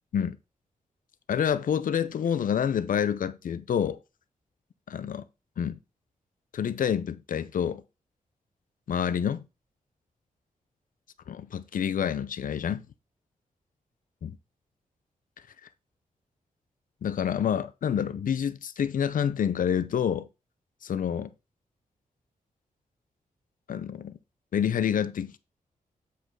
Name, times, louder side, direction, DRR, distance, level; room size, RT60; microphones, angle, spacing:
voice 1, 1.3-4.0 4.9-5.2 5.6-5.8 6.5-7.8 8.9-9.4 11.3-12.8 14.2-14.3 17.0-20.3 20.8-21.3 23.7-24.2 24.5-25.4, left 8 dB, 70° left, 0.6 m, -28 dB
8.0 x 5.2 x 3.8 m
wide cardioid pair, 120°, 14 cm